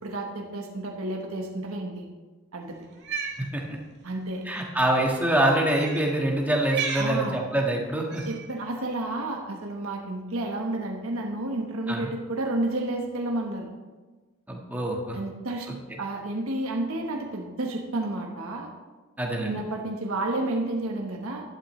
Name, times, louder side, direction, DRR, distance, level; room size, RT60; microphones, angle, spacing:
voice 1, 0.0-2.1 2.5-2.8 4.0-4.4 7.0-7.4 8.3-13.7 15.1-15.7 16.0-18.7 19.4-21.4, right 2 dB, 80° right, 1 dB, 1.2 m, -31 dB
Cat, 2.9-3.4 4.5-4.6 5.7-6.1 6.6-7.1 8.1-8.5, right 6 dB, 55° right, 1.7 m, -32 dB
voice 2, 4.4-8.2 11.9-12.1 14.5-15.2 19.2-19.6, right 1 dB, 10° right, 0 dB, 1.5 m, -25 dB
12.0 x 11.0 x 3.2 m, 1.3 s
head